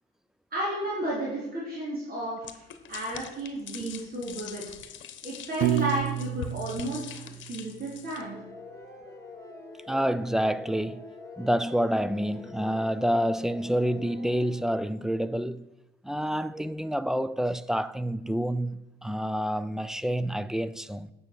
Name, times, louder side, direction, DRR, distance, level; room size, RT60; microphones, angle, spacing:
voice 1, 0.5-4.7 5.2-8.3, right 1 dB, 50° right, 3.7 m, -33 dB
sound 1, 2.4-8.2, left 8 dB, 70° left, 1.0 m, -43 dB
Piano, 5.6-7.8, right 13 dB, 85° right, 0.6 m, -30 dB
sound 2, 8.2-14.8, left 2 dB, 15° left, 3.1 m, -45 dB
voice 2, 9.9-11.1 11.4-15.7 16.0-21.1, equal, ahead, 0.4 m, -28 dB
9.1 x 6.9 x 6.1 m
cardioid pair, 90°, 20 cm